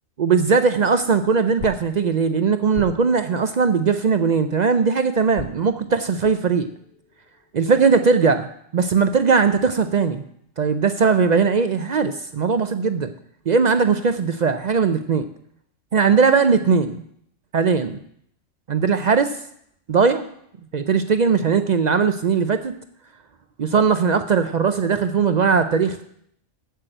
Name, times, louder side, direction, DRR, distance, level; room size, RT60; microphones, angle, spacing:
voice 1, 0.2-6.7 7.5-10.2 10.6-13.1 13.5-15.3 15.9-17.0 17.5-18.0 18.7-19.3 19.9-20.3 20.7-22.7 23.6-26.0, right 5 dB, 65° right, 9 dB, 0.4 m, -19 dB
sound 1, 0.7-4.8 5.3-8.4, left 4 dB, 55° left, 0.9 m, -42 dB
8.1 x 7.6 x 7.8 m, 0.70 s
omnidirectional pair, 1.4 m